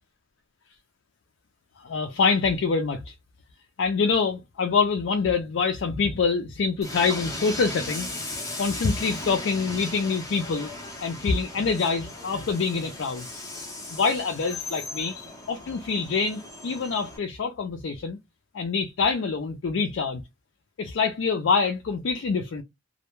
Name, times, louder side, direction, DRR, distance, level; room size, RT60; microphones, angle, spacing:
voice 1, 1.8-3.1 3.8-8.1 8.6-10.7 11.0-13.3 13.9-15.2 15.5-18.2 18.5-20.2 20.8-22.6, left 5 dB, 70° left, 0.4 m, -25 dB
Train, 6.8-17.2, left 2 dB, 15° left, 0.7 m, -37 dB
2.1 x 2.1 x 2.9 m
head